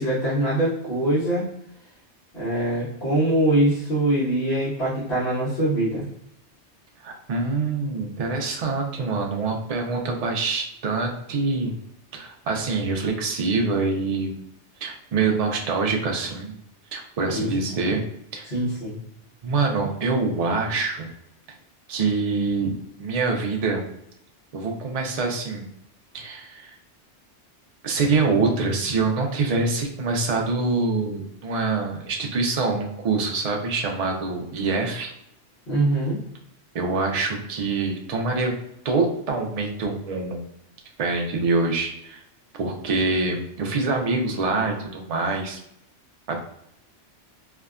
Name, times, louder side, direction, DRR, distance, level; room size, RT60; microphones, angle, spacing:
voice 1, 0.0-1.5 2.3-6.1 17.3-17.6 18.5-19.0 35.7-36.2, right 1 dB, 55° left, -9 dB, 1.1 m, -23 dB
voice 2, 7.0-11.7 12.1-14.4 14.8-16.6 16.9-18.0 18.3-18.5 19.4-21.1 21.9-23.8 24.5-25.7 26.1-26.7 27.8-35.1 36.7-38.6 38.8-40.4 41.0-42.2 42.6-45.6 46.3-46.4, right 3 dB, 60° right, 1 dB, 0.4 m, -25 dB
2.7 x 2.2 x 2.3 m, 0.78 s
omnidirectional pair, 1.2 m